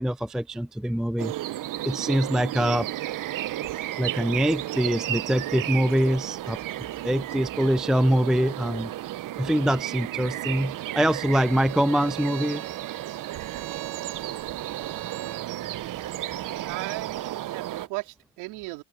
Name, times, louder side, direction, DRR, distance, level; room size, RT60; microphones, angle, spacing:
voice 1, 0.0-1.3 1.8-2.9 4.0-6.6 7.0-8.9 9.4-12.6, equal, ahead, 0.4 m, -24 dB
sound 1, 1.2-17.9, right 14 dB, 55° right, 0.8 m, -33 dB
Bowed string instrument, 11.0-15.5, right 15 dB, 70° right, 2.2 m, -42 dB
voice 2, 16.6-18.8, right 23 dB, 90° right, 3.6 m, -37 dB
open air
supercardioid pair, 80°, 38 cm